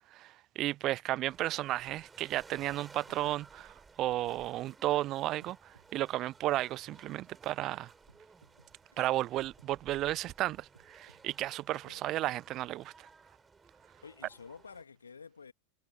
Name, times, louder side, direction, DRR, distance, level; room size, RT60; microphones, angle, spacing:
voice 1, 0.1-7.9 9.0-13.1, right 15 dB, 35° right, 0.6 m, -33 dB
sound 1, 0.9-1.8 2.2-2.4 2.7-3.8 4.2-4.4 4.9-5.1 5.4-5.9 6.2-6.4 6.9-7.1 7.6-7.7 8.1-9.1 9.6-10.4 10.7-11.3, right 4 dB, 80° right, 7.5 m, -64 dB
sound 2, 1.3-14.8, right 4 dB, 15° right, 7.4 m, -58 dB
voice 2, 11.8-12.3 14.0-15.5, left 5 dB, 75° left, 2.5 m, -51 dB
figure-of-eight pair, 90°, 0 cm